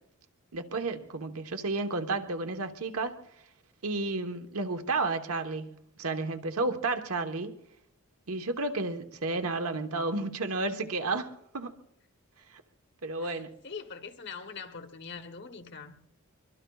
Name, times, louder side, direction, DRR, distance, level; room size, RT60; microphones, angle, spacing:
voice 1, 0.5-3.1 3.8-7.5 8.3-11.7 12.5-12.6 13.0-13.5, right 3 dB, 80° right, 1.2 m, -32 dB
voice 2, 13.2-15.9, left 5 dB, 50° left, 1.0 m, -43 dB
24.0 x 23.5 x 2.4 m
head